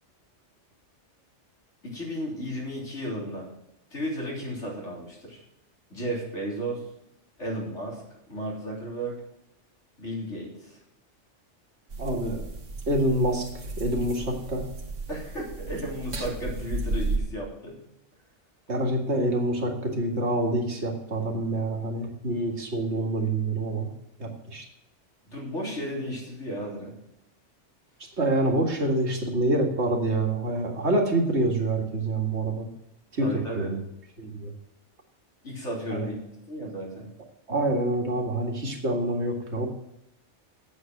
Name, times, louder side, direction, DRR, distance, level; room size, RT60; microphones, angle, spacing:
voice 1, 1.8-3.5 3.9-5.4 5.9-6.8 7.4-8.0 8.3-9.2 10.0-10.8 15.1-17.8 25.3-26.9 33.2-33.7 35.4-36.1 36.5-37.1, right 1 dB, 70° left, -3 dB, 3.9 m, -34 dB
sound 1, 11.9-17.2, right 2 dB, 80° right, 1.9 m, -33 dB
voice 2, 12.0-12.4 12.9-13.5 13.8-14.6 18.7-23.9 24.2-24.6 28.2-32.7 33.1-33.3 33.6-33.8 34.2-34.5 35.9-36.1 37.5-39.7, right 1 dB, 65° right, 2 dB, 2.3 m, -26 dB
8.2 x 8.2 x 7.6 m, 0.82 s
omnidirectional pair, 1.2 m